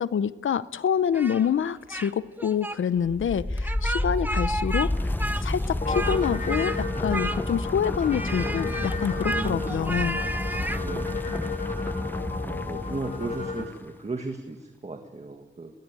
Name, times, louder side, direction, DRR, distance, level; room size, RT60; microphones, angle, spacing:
voice 1, 0.0-5.1 5.4-10.2, left 8 dB, 85° left, 16 dB, 0.7 m, -27 dB
Speech, 1.1-2.1 2.4-2.8 3.6-4.9 5.2-6.2 6.5-6.8 7.1-7.7 8.1-10.8, right 1 dB, 10° right, 1.1 m, -33 dB
sound 1, 3.0-13.8, left 1 dB, 10° left, 0.7 m, -31 dB
sound 2, 5.8-13.7, left 4 dB, 45° left, 3.4 m, -33 dB
voice 2, 9.2-9.8 10.7-11.3 12.4-15.7, right 3 dB, 35° right, 4 dB, 1.8 m, -36 dB
22.0 x 19.0 x 9.1 m, 1.2 s
wide cardioid pair, 105°, 20 cm